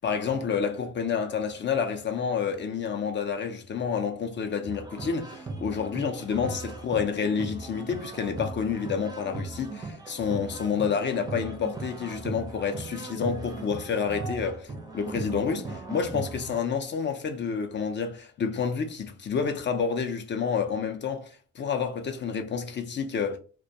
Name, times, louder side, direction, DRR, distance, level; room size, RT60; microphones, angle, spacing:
voice 1, 0.0-23.4, left 6 dB, 40° left, 0.4 m, -29 dB
sound 1, 4.6-16.6, right 3 dB, 15° right, 0.5 m, -38 dB
2.2 x 2.1 x 2.6 m
cardioid pair, 90°, 30 cm